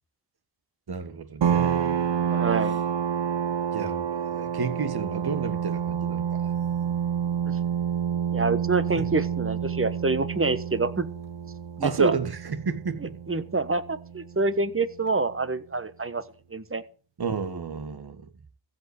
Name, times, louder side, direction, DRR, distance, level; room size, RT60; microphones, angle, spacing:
voice 1, 0.9-2.0 2.6-2.7 3.7-6.5 9.0-9.1 11.8-13.1 17.2-18.2, right 5 dB, 60° right, 1.7 m, -31 dB
sound 1, 1.4-14.7, right 8 dB, 80° right, 0.9 m, -29 dB
voice 2, 2.3-2.8 7.5-7.6 8.3-11.1 11.8-12.1 13.3-16.2 16.5-16.8, right 3 dB, 30° right, 1.4 m, -26 dB
15.5 x 5.7 x 8.1 m
cardioid pair, 55°, 43 cm